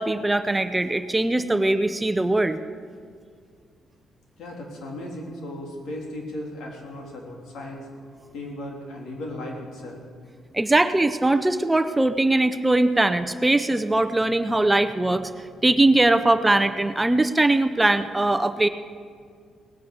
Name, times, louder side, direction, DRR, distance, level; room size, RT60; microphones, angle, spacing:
voice 1, 0.0-2.6 10.5-15.3 15.6-18.7, right 2 dB, 15° right, 11 dB, 0.6 m, -21 dB
voice 2, 4.4-7.9 8.3-10.0, left 1 dB, 75° left, 0 dB, 3.3 m, -36 dB
18.5 x 9.5 x 6.6 m, 2.1 s
cardioid pair, 90°, 0 cm